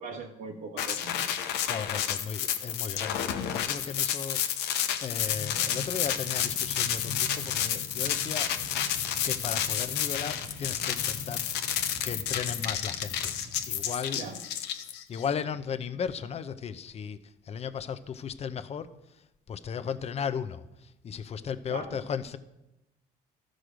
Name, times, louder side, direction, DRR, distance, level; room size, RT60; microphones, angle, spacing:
voice 1, 0.0-1.8 14.1-14.4 21.7-22.0, right 3 dB, 75° right, -4 dB, 1.4 m, -41 dB
sound 1, 0.8-15.2, left 10 dB, 85° left, 0.9 m, -30 dB
voice 2, 1.6-4.7 5.0-8.8 9.2-11.8 12.0-13.4 13.7-14.2 14.8-17.2 17.4-18.9 19.5-22.4, left 7 dB, 40° left, 12 dB, 0.7 m, -36 dB
Train, 5.2-14.1, left 2 dB, 10° right, 1.2 m, -44 dB
13.0 x 6.4 x 5.1 m, 0.92 s
cardioid pair, 110°, 17 cm